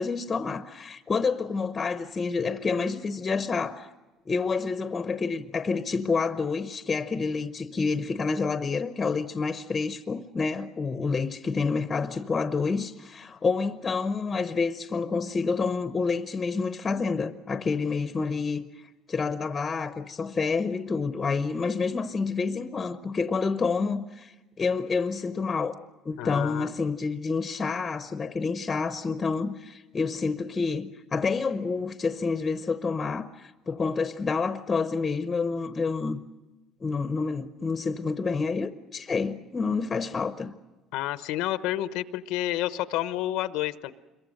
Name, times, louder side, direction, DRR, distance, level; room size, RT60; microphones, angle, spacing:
voice 1, 0.0-3.9 4.3-18.8 19.1-25.8 26.0-36.2 36.8-40.5, left 4 dB, 20° left, 0.8 m, -28 dB
voice 2, 26.2-26.7 40.9-43.9, left 14 dB, 85° left, 0.9 m, -29 dB
26.5 x 22.5 x 6.5 m
cardioid pair, 155°, 0 cm